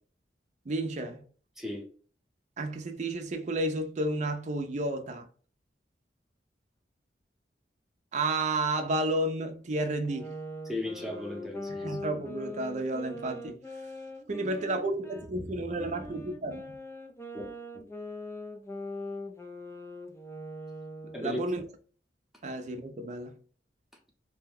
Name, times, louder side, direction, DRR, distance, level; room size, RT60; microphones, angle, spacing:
voice 1, 0.7-1.2 2.6-5.3 8.1-10.3 11.8-13.6 14.3-16.8 21.2-21.6 22.4-23.4, right 2 dB, 40° right, 0.5 m, -31 dB
sound 1, 10.0-15.3 15.8-21.4, left 1 dB, 15° left, 0.4 m, -41 dB
voice 2, 10.6-12.0 17.3-17.8 21.1-21.4, left 1 dB, ahead, 0.8 m, -36 dB
2.7 x 2.1 x 3.4 m
head